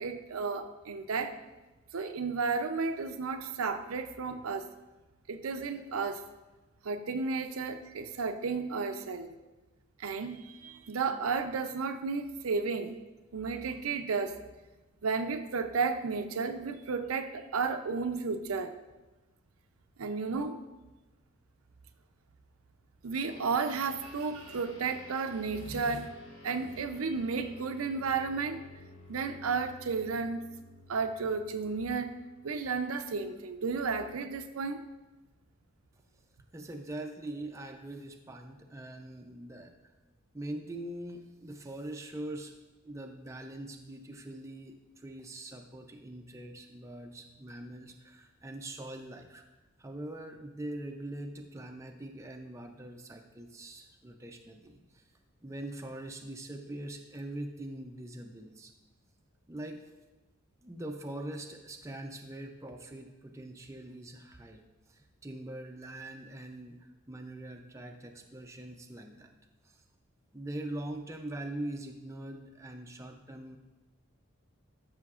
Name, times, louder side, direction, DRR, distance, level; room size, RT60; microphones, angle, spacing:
voice 1, 0.0-1.3 1.9-4.7 5.3-6.2 6.8-9.3 10.0-13.0 13.3-14.3 15.0-18.8 20.0-20.6 23.0-26.1 26.4-28.6 29.1-30.4 30.9-32.1 32.4-34.8, right 4 dB, 80° right, 8 dB, 0.5 m, -33 dB
sound 1, 23.2-32.9, left 2 dB, 65° left, 1.3 m, -53 dB
voice 2, 36.5-39.9 40.3-42.5 42.8-49.4 49.8-55.0 55.4-58.7 59.5-59.8 60.6-69.4 69.6-69.8 70.3-73.6, right 1 dB, 15° right, 4 dB, 0.4 m, -43 dB
12.5 x 5.8 x 2.4 m, 1.1 s
head